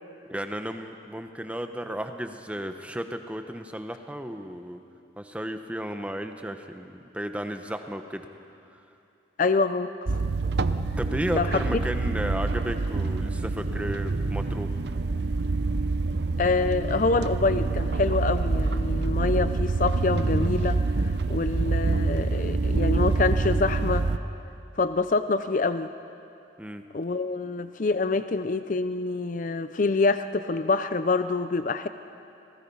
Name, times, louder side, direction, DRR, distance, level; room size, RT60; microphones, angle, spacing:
voice 1, 0.3-4.8 5.2-8.3 8.7-8.8 11.0-14.7 26.6-26.9, equal, 5° right, 6 dB, 0.9 m, -34 dB
voice 2, 9.4-9.9 11.3-11.6 16.4-20.8 21.3-24.1 24.8-25.9 26.9-31.9, left 3 dB, 45° left, 11 dB, 0.5 m, -26 dB
sound 1, 10.1-24.2, right 3 dB, 60° right, 0.7 m, -26 dB
27.5 x 20.0 x 5.6 m, 2.7 s
head